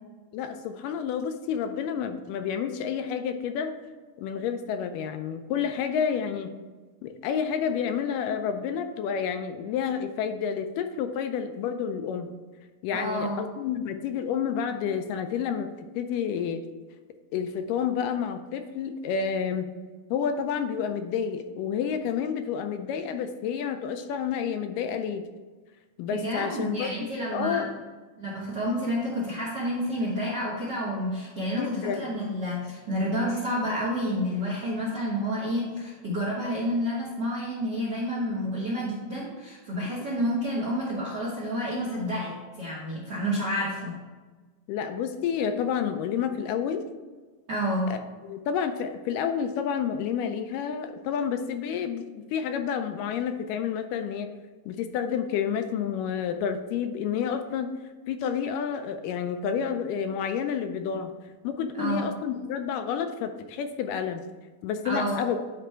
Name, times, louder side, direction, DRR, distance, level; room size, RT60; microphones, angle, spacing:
voice 1, 0.3-3.7 4.2-6.5 7.0-12.3 12.8-15.7 16.0-16.6 17.3-19.7 20.1-25.2 26.0-27.7 31.6-32.1 44.7-46.8 47.9-48.0 48.3-54.3 54.7-57.7 58.1-61.1 61.4-64.2 64.6-65.4, left 7 dB, 80° left, 7 dB, 2.0 m, -29 dB
voice 2, 12.9-13.4 26.2-27.7 28.2-43.9 47.5-47.9 61.8-62.1 64.8-65.2, equal, 60° right, -5 dB, 1.1 m, -29 dB
10.0 x 3.4 x 4.4 m, 1.3 s
omnidirectional pair, 4.0 m